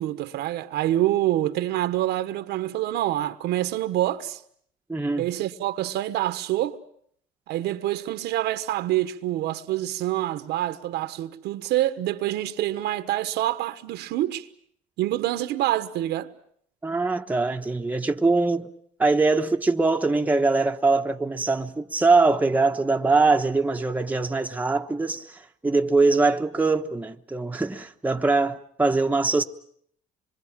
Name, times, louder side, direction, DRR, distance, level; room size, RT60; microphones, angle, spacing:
voice 1, 0.0-4.4 5.2-6.8 7.5-14.5 15.0-16.3, right 14 dB, 80° right, 1.3 m, -26 dB
voice 2, 4.9-5.3 16.8-18.7 19.0-29.4, right 3 dB, 10° right, 1.1 m, -22 dB
26.0 x 23.0 x 7.4 m
cardioid pair, 110°, 17 cm